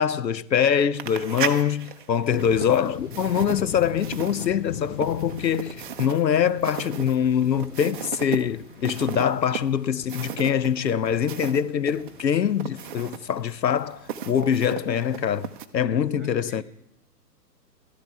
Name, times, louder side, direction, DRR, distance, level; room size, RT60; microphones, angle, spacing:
voice 1, 0.0-16.6, left 8 dB, 85° left, 0.6 m, -24 dB
sound 1, 0.9-11.6 11.9-15.7, right 9 dB, 30° right, 0.6 m, -36 dB
sound 2, 2.3-15.6, left 8 dB, 45° left, 0.9 m, -42 dB
voice 2, 15.8-16.6, right 1 dB, ahead, 2.6 m, -45 dB
14.0 x 12.5 x 4.5 m
figure-of-eight pair, 120°, 50 cm